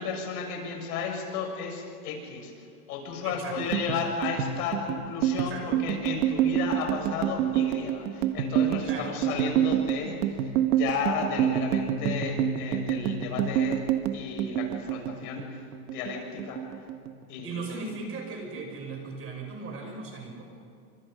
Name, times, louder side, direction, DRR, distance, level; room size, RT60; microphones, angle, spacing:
voice 1, 0.0-13.8 14.1-16.6 17.3-17.6, left 5 dB, 75° left, 2 dB, 6.7 m, -33 dB
voice 2, 3.2-3.7 5.4-5.8 8.8-9.1 17.4-20.4, right 3 dB, 30° right, 2 dB, 6.0 m, -38 dB
sound 1, 3.6-16.1 16.4-17.4 17.7-18.1 18.4-19.1, right 10 dB, 85° right, 1.9 m, -27 dB
28.5 x 26.5 x 5.3 m, 2.5 s
supercardioid pair, 160°, 46 cm